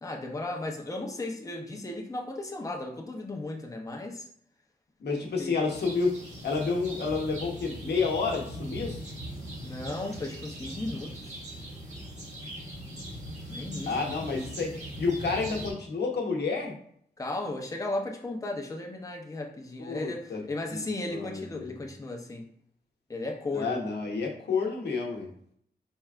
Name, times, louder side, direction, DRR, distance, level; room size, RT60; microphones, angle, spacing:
voice 1, 0.0-4.3 5.4-5.5 9.6-11.4 13.5-14.0 17.2-22.5 23.1-23.7, left 2 dB, 20° left, 1 dB, 0.6 m, -35 dB
voice 2, 5.0-6.2 6.4-9.1 13.9-16.8 19.8-20.4 20.7-20.8 21.1-21.9 23.5-25.3, left 4 dB, 85° left, 0 dB, 0.9 m, -30 dB
sound 1, 5.7-15.7, equal, 45° right, 1.7 m, -40 dB
4.5 x 3.3 x 2.4 m, 0.65 s
wide cardioid pair, 100°, 17 cm